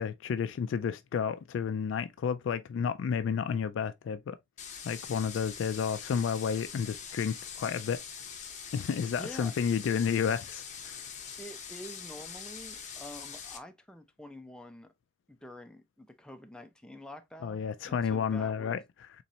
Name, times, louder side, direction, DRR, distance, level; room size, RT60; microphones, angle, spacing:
voice 1, 0.0-4.4 4.8-8.0 8.7-11.0 17.4-18.8, left 7 dB, 80° left, 0.3 m, -31 dB
sound 1, 4.6-13.6, left 7 dB, 40° left, 0.7 m, -43 dB
voice 2, 9.2-9.5 11.4-14.9 15.3-18.8, left 1 dB, 5° left, 0.5 m, -47 dB
4.1 x 3.1 x 2.7 m
head